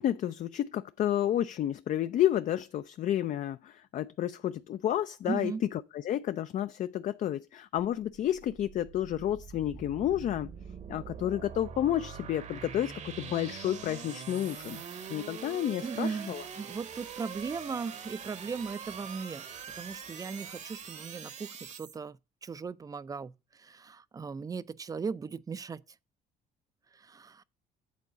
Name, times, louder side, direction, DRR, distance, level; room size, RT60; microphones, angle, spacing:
voice 1, 0.0-10.5 10.9-14.8 15.1-16.4, left 11 dB, 50° left, 0.4 m, -31 dB
voice 2, 5.3-5.6 14.9-15.2 15.8-19.4 19.7-23.3 23.6-25.8 27.0-27.4, right 5 dB, 20° right, 0.4 m, -37 dB
sound 1, 7.8-22.0, right 7 dB, 45° right, 0.9 m, -44 dB
8.5 x 3.8 x 6.7 m
cardioid pair, 110°, 17 cm